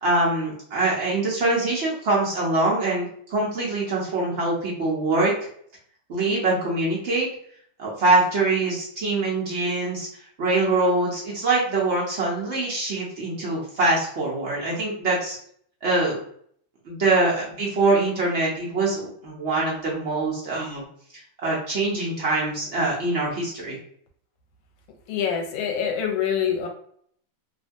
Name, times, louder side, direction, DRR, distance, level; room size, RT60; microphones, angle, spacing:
voice 1, 0.0-5.3 6.1-7.3 7.8-10.1 10.4-15.4 15.8-16.2 16.8-20.8 21.4-23.8, right 2 dB, 70° right, -5 dB, 0.6 m, -24 dB
voice 2, 25.1-26.7, left 8 dB, 85° left, 3 dB, 1.4 m, -25 dB
3.2 x 2.2 x 2.6 m, 0.63 s
omnidirectional pair, 2.2 m